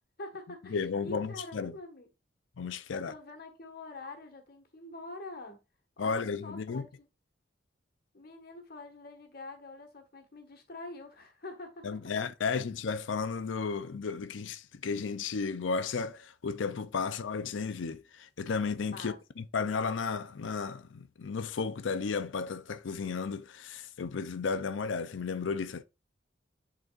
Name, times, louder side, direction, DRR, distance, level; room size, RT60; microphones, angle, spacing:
voice 1, 0.2-2.1 2.9-5.6 6.0-7.1 8.1-11.8 18.9-19.2, left 2 dB, 55° left, 1.6 m, -45 dB
voice 2, 0.7-1.7 2.6-3.1 6.0-6.9 11.8-25.8, left 5 dB, 85° left, 0.5 m, -34 dB
10.5 x 4.0 x 2.4 m
head